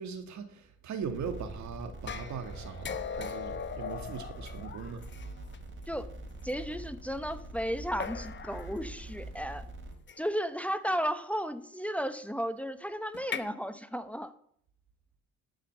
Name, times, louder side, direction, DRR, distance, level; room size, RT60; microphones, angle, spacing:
voice 1, 0.0-5.0, right 6 dB, 70° right, 8 dB, 1.9 m, -40 dB
sound 1, 1.0-9.9, right 2 dB, 40° right, 3.4 m, -44 dB
sound 2, 2.1-5.6 6.5-6.6 8.0-8.8 10.1-10.4 13.1-13.4, left 7 dB, 40° left, 0.9 m, -39 dB
voice 2, 6.4-9.7 10.2-14.3, equal, 5° left, 11 dB, 0.8 m, -34 dB
11.0 x 5.7 x 7.9 m, 0.66 s
cardioid pair, 90°, 30 cm